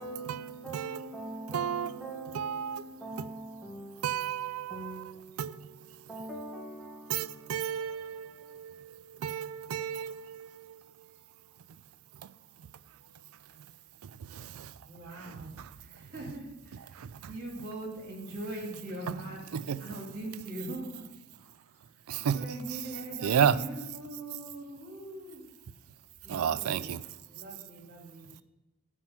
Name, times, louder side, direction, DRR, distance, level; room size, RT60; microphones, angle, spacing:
voice 1, 0.0-8.7, right 2 dB, ahead, 1.3 m, -44 dB
voice 2, 0.7-1.0 1.5-1.9 2.3-2.8 3.2-3.3 4.0-5.0 5.4-5.7 7.1-10.8 14.0-14.7 15.2-15.4 17.0-17.1 19.5-19.8 22.1-22.4 23.2-23.6 26.3-27.0, right 8 dB, 80° right, 0.4 m, -32 dB
voice 3, 14.8-21.0 21.4-21.8 22.3-25.4 26.2-26.8 27.3-28.3, right 1 dB, 50° right, 2.2 m, -42 dB
8.6 x 4.5 x 5.8 m
head